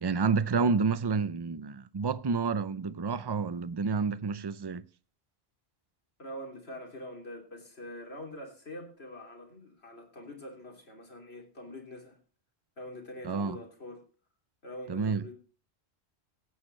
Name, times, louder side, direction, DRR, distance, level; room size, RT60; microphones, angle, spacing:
voice 1, 0.0-4.8 13.2-13.6 14.9-15.2, right 5 dB, 30° right, 0.5 m, -29 dB
voice 2, 6.2-12.2 12.8-14.0 14.6-15.3, left 1 dB, 70° left, 3.3 m, -44 dB
17.0 x 9.3 x 3.2 m
omnidirectional pair, 1.1 m